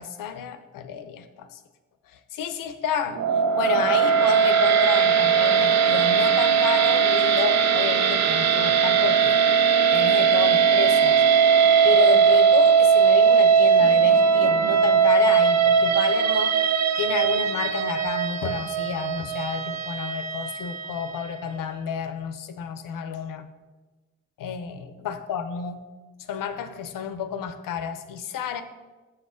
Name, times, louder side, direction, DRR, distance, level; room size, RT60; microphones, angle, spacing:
voice 1, 0.0-1.6 2.1-3.2 3.6-9.4 9.9-11.2 11.8-16.6 17.0-23.4 24.4-25.8 26.3-28.6, left 7 dB, 80° left, 10 dB, 0.6 m, -30 dB
sound 1, 3.1-21.4, right 6 dB, 55° right, 0.6 m, -19 dB
6.0 x 5.6 x 4.9 m, 1.2 s
supercardioid pair, 40°, 32 cm